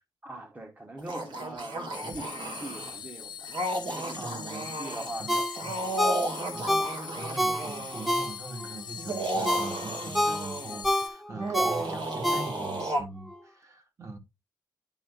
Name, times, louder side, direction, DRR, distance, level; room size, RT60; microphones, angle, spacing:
voice 1, 0.2-3.5 3.8-6.0, right 2 dB, 20° right, 1.0 m, -42 dB
sound 1, 1.0-3.0 3.5-5.1 5.5-8.3 9.0-10.8 11.4-13.0, right 1 dB, 80° right, 2.2 m, -34 dB
sound 2, 1.9-11.1, left 8 dB, 70° left, 0.8 m, -42 dB
voice 2, 4.1-5.9 6.5-14.2, right 2 dB, 40° right, 1.6 m, -42 dB
Ringtone, 5.3-8.7 9.1-12.9 13.3-13.4, equal, ahead, 0.6 m, -29 dB
10.5 x 5.5 x 2.4 m
wide cardioid pair, 135°, 8 cm